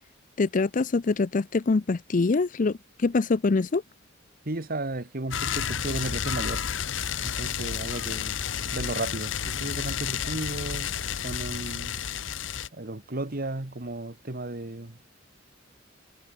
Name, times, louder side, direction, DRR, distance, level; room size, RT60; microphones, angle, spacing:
voice 1, 0.4-3.8, left 3 dB, 40° left, 0.5 m, -24 dB
voice 2, 4.4-6.6 7.2-8.4 8.7-11.0 11.2-12.0 12.7-15.0, right 2 dB, 50° right, 1.6 m, -34 dB
sound 1, 5.3-12.7, left 7 dB, 70° left, 1.0 m, -31 dB
head